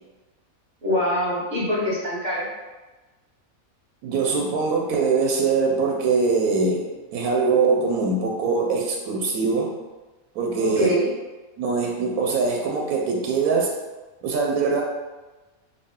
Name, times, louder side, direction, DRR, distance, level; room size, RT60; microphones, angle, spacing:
voice 1, 0.8-2.5 10.6-11.1, equal, 35° right, -8 dB, 1.1 m, -24 dB
voice 2, 4.0-9.7 10.3-10.9 11.6-13.7 14.2-14.8, right 4 dB, 90° right, 0 dB, 1.1 m, -22 dB
3.7 x 2.1 x 3.5 m, 1.2 s
omnidirectional pair, 1.5 m